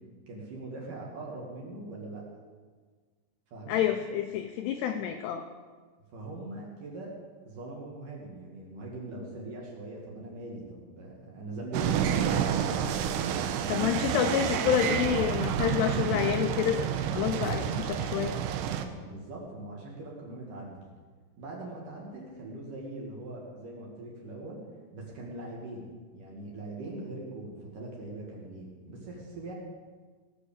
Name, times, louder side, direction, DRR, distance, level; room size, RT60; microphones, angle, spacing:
voice 1, 0.3-2.2 3.5-3.8 6.1-7.1 7.4-12.5 13.6-13.9 18.9-20.8 21.4-24.6 24.9-25.9 26.1-29.5, right 2 dB, 50° right, -3 dB, 3.3 m, -41 dB
voice 2, 3.7-5.4 13.7-18.3, left 10 dB, 85° left, 7 dB, 2.4 m, -28 dB
sound 1, 11.7-18.9, right 9 dB, 90° right, 2.3 m, -29 dB
18.0 x 6.6 x 6.9 m, 1.5 s
omnidirectional pair, 5.6 m